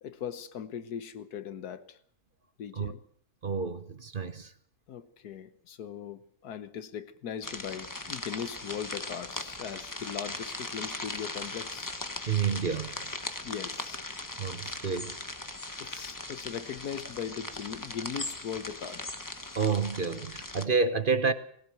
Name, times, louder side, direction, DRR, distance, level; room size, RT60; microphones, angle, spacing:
voice 1, 0.0-2.0 2.6-3.0 4.9-12.0 13.4-14.0 15.8-19.1, left 8 dB, 85° left, 13 dB, 1.6 m, -39 dB
voice 2, 3.4-4.5 12.3-12.9 14.4-15.2 15.9-16.0 19.5-21.3, right 5 dB, 40° right, 11 dB, 1.0 m, -29 dB
sound 1, 7.4-20.6, left 2 dB, 15° left, 1.0 m, -39 dB
20.0 x 17.5 x 7.7 m, 0.64 s
omnidirectional pair, 1.6 m